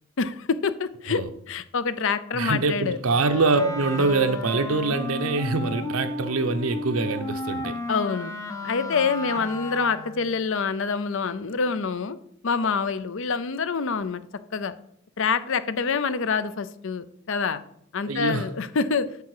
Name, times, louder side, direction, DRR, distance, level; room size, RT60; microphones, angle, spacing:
voice 1, 0.2-3.0 7.9-8.3 8.6-12.2 12.4-14.2 14.5-14.7 15.2-17.6 17.9-19.1, left 5 dB, 65° left, 0.6 m, -26 dB
voice 2, 2.3-7.8 18.1-18.5, right 3 dB, 80° right, 0.8 m, -24 dB
Wind instrument woodwind instrument, 3.0-10.3, left 2 dB, 15° left, 0.8 m, -33 dB
8.5 x 6.9 x 4.8 m
head